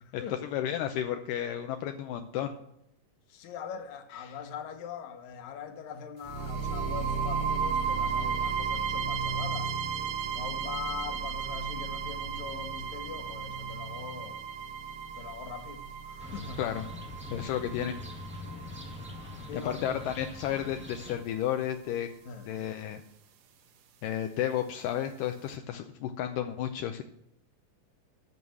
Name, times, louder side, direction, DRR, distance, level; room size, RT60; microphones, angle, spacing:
voice 1, 0.0-0.4 3.3-9.7 10.3-14.4 15.1-16.6 17.3-17.7 18.4-18.6 19.4-20.0 22.3-22.5, left 7 dB, 65° left, 2.2 m, -42 dB
voice 2, 0.5-2.6 4.2-4.4 16.6-16.8 17.3-18.0 19.5-22.1 22.5-23.0 24.0-27.0, left 10 dB, 80° left, 2.1 m, -32 dB
sound 1, 6.2-20.2, right 6 dB, 70° right, 2.4 m, -34 dB
sound 2, 16.2-21.2, left 2 dB, 10° right, 0.5 m, -43 dB
11.0 x 6.3 x 7.6 m
omnidirectional pair, 4.0 m